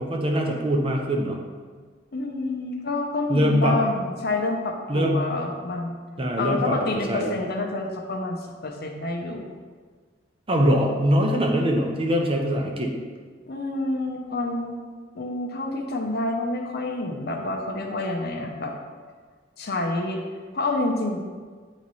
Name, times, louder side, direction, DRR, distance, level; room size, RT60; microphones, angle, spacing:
voice 1, 0.0-1.4 3.3-3.8 4.9-5.3 6.2-7.4 10.5-12.9, equal, 30° right, 1 dB, 0.7 m, -23 dB
voice 2, 2.1-6.0 6.4-9.5 13.5-14.8 15.1-18.7 19.6-20.2 20.5-21.2, left 2 dB, 55° left, 2 dB, 0.8 m, -28 dB
8.7 x 3.1 x 4.1 m, 1.5 s
head